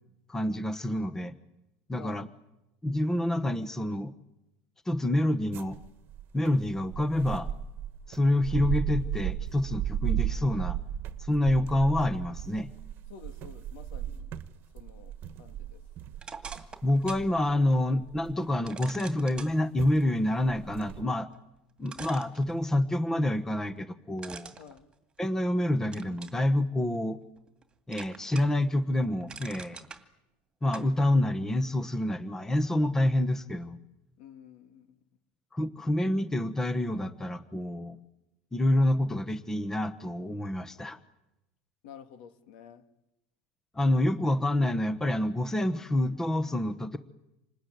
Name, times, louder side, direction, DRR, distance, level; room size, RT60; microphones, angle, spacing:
voice 1, 0.3-1.3 1.9-2.3 2.8-4.1 4.9-5.8 6.3-7.5 8.1-10.8 11.2-12.7 16.8-21.3 21.8-24.5 25.2-27.2 27.9-29.9 30.6-33.8 35.5-38.0 38.5-41.0 43.7-47.0, left 1 dB, 10° left, 11 dB, 1.1 m, -27 dB
voice 2, 2.0-2.3 13.1-14.3 14.7-15.9 24.6-24.9 34.2-35.0 41.8-42.8, left 7 dB, 70° left, 8 dB, 2.5 m, -50 dB
sound 1, 5.5-18.7 19.4-19.5 19.8-20.0 20.4-21.0, right 11 dB, 45° right, 1.4 m, -35 dB
sound 2, 16.2-17.3 17.7-17.8 18.7-19.5 21.3-21.4 21.9-22.9 24.2-25.5 25.9-26.4 26.9-27.6 27.9-28.6 29.0-30.0 30.7-30.9, right 5 dB, 15° right, 2.3 m, -44 dB
27.0 x 20.0 x 9.4 m, 0.95 s
supercardioid pair, 135°, 5 cm